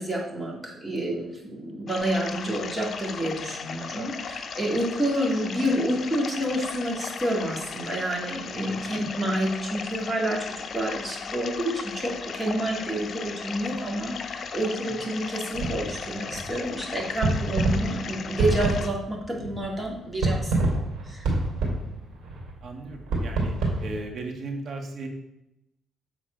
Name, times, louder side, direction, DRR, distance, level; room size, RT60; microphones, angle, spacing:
voice 1, 0.0-10.5 10.7-21.3, right 1 dB, 15° right, -2 dB, 2.3 m, -29 dB
Running Stream in a Wood - Youghal Co. Cork Ireland, 1.9-18.9, left 6 dB, 55° left, 0.6 m, -37 dB
voice 2, 8.6-9.0 14.8-14.9 21.6-22.0 22.6-25.1, right 2 dB, 60° right, 3 dB, 1.5 m, -37 dB
sound 1, 15.5-24.0, right 2 dB, 80° right, 2.8 m, -28 dB
7.6 x 4.2 x 5.2 m, 0.85 s
cardioid pair, 90°, 0 cm